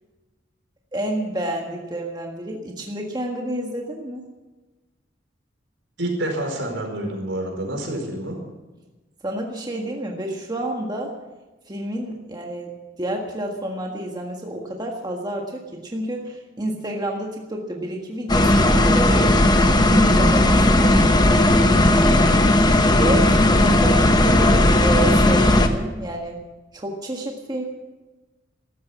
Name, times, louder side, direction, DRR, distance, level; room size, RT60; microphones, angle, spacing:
voice 1, 0.9-4.2 9.2-11.1 11.7-19.4 19.8-21.3 23.0-23.2 23.6-26.4 26.7-27.6, right 1 dB, 20° right, 1 dB, 1.6 m, -29 dB
voice 2, 6.0-8.4 23.0-23.6, right 1 dB, 80° right, 2 dB, 4.8 m, -28 dB
sound 1, 18.3-25.7, left 1 dB, 20° left, 1.1 m, -16 dB
14.5 x 12.5 x 7.3 m, 1.2 s
head